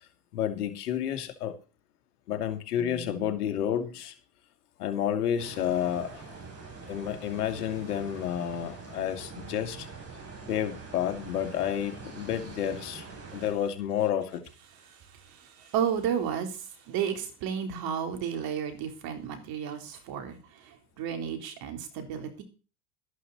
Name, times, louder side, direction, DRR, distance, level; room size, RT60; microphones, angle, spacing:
voice 1, 0.3-1.5 2.3-4.1 4.8-6.2 6.9-9.9 10.5-13.0 13.3-14.4, left 10 dB, 80° left, 7 dB, 2.6 m, -30 dB
sound 1, 5.4-13.5, right 4 dB, 30° right, 6.9 m, -44 dB
voice 2, 14.9-22.4, right 8 dB, 50° right, 6 dB, 3.8 m, -33 dB
13.5 x 11.5 x 4.2 m, 0.35 s
hypercardioid pair, 105°, 45 cm